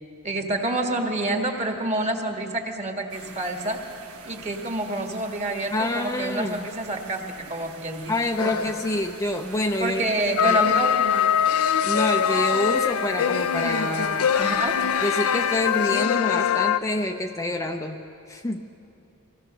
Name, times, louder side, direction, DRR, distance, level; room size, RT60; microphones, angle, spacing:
voice 1, 0.2-3.8 4.3-8.1 9.8-11.0 14.4-14.8, right 1 dB, 30° right, 3 dB, 1.7 m, -27 dB
sound 1, 3.1-16.0, right 5 dB, 90° right, 1.4 m, -46 dB
voice 2, 5.7-6.7 8.1-10.0 10.4-10.6 11.8-14.3 15.0-18.0 18.3-18.7, left 1 dB, 15° left, 4 dB, 0.6 m, -27 dB
sound 2, 8.4-9.2 10.4-16.8, left 8 dB, 85° left, 0.6 m, -23 dB
24.0 x 17.0 x 6.6 m, 2.8 s
head